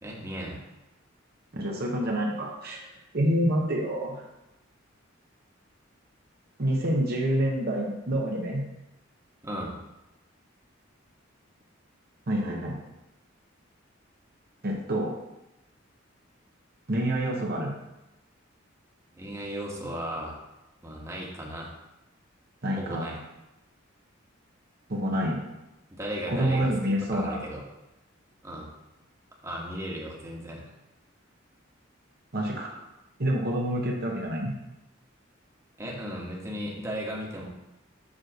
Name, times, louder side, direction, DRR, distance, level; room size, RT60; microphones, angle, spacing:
voice 1, 0.0-0.6 9.4-9.7 19.1-20.4 20.8-21.7 22.8-23.2 25.9-26.7 27.1-27.6 28.4-28.7 29.4-30.6 35.8-37.4, equal, 15° right, -3 dB, 1.3 m, -35 dB
voice 2, 1.5-4.2 6.6-8.6 12.3-12.8 14.6-15.1 16.9-17.7 22.6-23.2 24.9-25.4 26.3-27.4 32.3-32.8 33.2-34.5, right 1 dB, 50° right, -1 dB, 0.9 m, -27 dB
7.4 x 3.1 x 6.2 m, 0.95 s
head